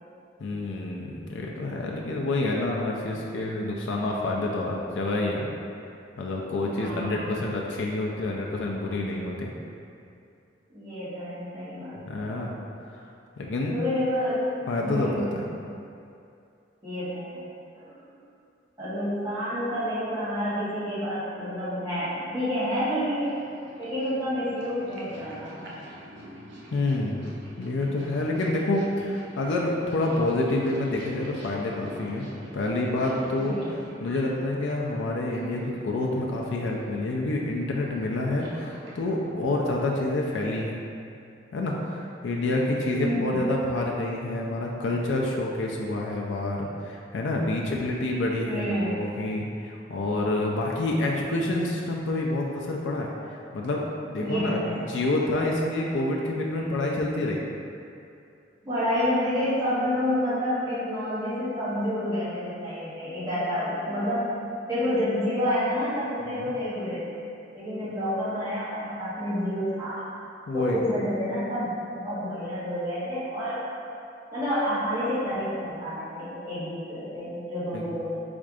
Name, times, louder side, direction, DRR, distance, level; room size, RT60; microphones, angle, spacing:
voice 1, 0.4-5.5 6.2-9.5 12.0-12.5 12.9-13.0 13.4-13.8 14.7-15.4 26.7-32.3 32.5-33.6 34.0-40.8 41.5-53.8 54.1-57.4 66.2-66.4 70.5-70.8 77.7-77.8, left 2 dB, 75° left, -1 dB, 0.4 m, -28 dB
voice 2, 6.7-7.4 10.7-12.3 13.7-14.4 14.8-15.3 16.8-17.4 17.7-17.9 18.8-23.4 23.8-25.8 33.4-33.7 43.0-43.1 48.4-48.9 54.2-54.9 56.5-56.6 58.6-64.3 64.7-67.1 67.5-70.1 70.5-73.6 74.3-78.2, equal, 20° right, -14 dB, 1.3 m, -29 dB
Purr, 22.8-40.4, right 1 dB, 70° right, 0.8 m, -46 dB
4.3 x 2.5 x 4.8 m, 2.5 s
head